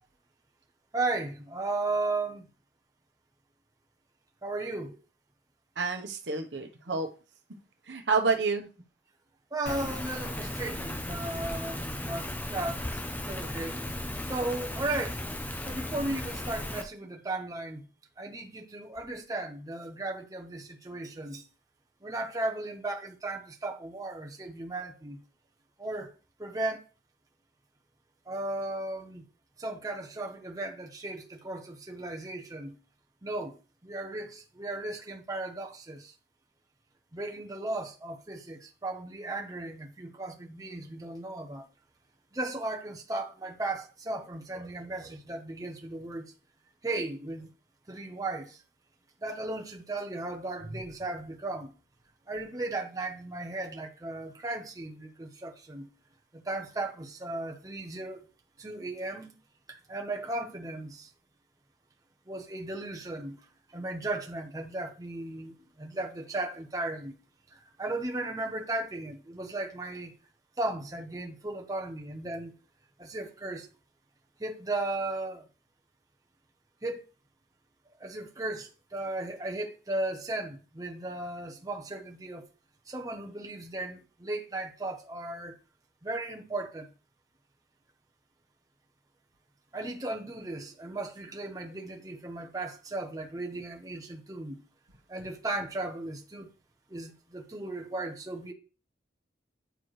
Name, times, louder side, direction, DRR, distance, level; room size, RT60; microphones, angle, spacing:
voice 1, 0.9-2.5 4.4-5.0 9.5-12.9 13.3-13.7 14.3-15.2 15.6-17.9 18.2-21.5 22.0-25.2 25.8-26.1 26.4-26.8 28.3-29.2 29.6-32.8 33.2-33.6 33.8-36.1 37.1-41.6 42.3-46.3 46.8-47.5 47.9-48.6 49.2-51.7 52.3-55.9 56.3-58.2 58.6-59.3 59.7-61.1 62.3-63.4 63.7-67.2 67.5-70.1 70.6-72.5 73.0-73.7 74.4-75.5 76.8-77.0 78.0-82.5 82.9-85.5 86.0-86.9 89.7-94.6 95.1-96.5 96.9-98.5, right 2 dB, 20° right, 0.8 m, -36 dB
voice 2, 5.8-7.1 7.9-8.7 50.6-50.7, right 4 dB, 75° right, 1.0 m, -29 dB
Rain, 9.7-16.8, left 1 dB, 10° left, 0.6 m, -36 dB
9.0 x 4.4 x 3.2 m
head